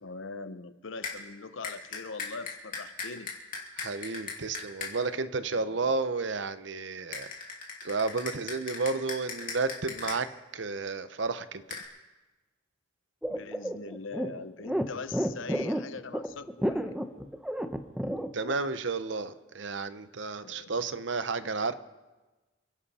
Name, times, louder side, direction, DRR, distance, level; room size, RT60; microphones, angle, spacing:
voice 1, 0.0-3.3 5.6-5.9 13.3-16.9 20.4-20.8, left 4 dB, 75° left, 12 dB, 0.8 m, -42 dB
sound 1, 1.0-1.2 1.6-4.9 7.1-10.2 11.7-11.8, left 5 dB, 45° left, 2.9 m, -37 dB
voice 2, 3.8-7.3 7.8-10.3 10.5-11.6 18.3-21.7, right 4 dB, 65° right, 12 dB, 0.8 m, -32 dB
sound 2, 13.2-18.5, equal, 5° right, 0.7 m, -31 dB
28.0 x 11.0 x 4.3 m, 1.2 s
head